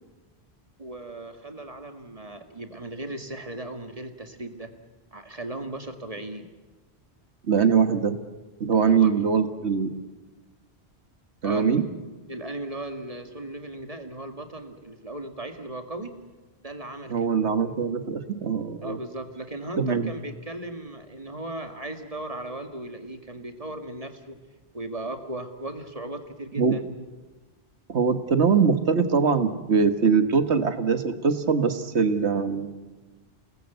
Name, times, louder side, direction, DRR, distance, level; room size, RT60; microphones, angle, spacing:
voice 1, 0.8-4.7 5.1-6.5 8.8-9.1 11.4-12.0 12.3-16.2 16.6-17.3 18.8-24.4 24.7-26.8, right 1 dB, 35° right, 5 dB, 2.1 m, -37 dB
voice 2, 7.5-8.2 8.6-9.9 11.4-11.8 17.1-19.0 19.8-20.1 26.6-26.7 27.9-32.7, right 5 dB, 80° right, 9 dB, 1.8 m, -22 dB
29.0 x 19.0 x 8.1 m, 1.2 s
omnidirectional pair, 1.1 m